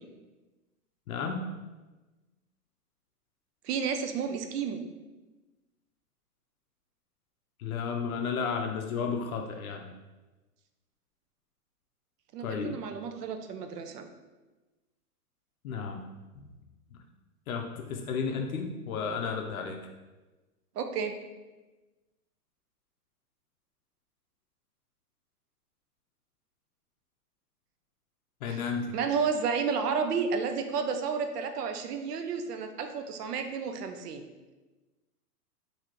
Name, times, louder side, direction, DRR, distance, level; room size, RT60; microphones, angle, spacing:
voice 1, 1.1-1.5 7.6-9.9 12.4-12.8 15.6-16.1 16.9-17.0 17.5-19.8 28.4-29.0, left 5 dB, 65° left, 3 dB, 0.5 m, -33 dB
voice 2, 3.6-4.8 12.3-14.1 20.8-21.1 28.5-28.7 28.9-34.3, right 6 dB, 85° right, 7 dB, 0.6 m, -31 dB
3.9 x 2.7 x 2.9 m, 1.2 s
hypercardioid pair, 170°, 46 cm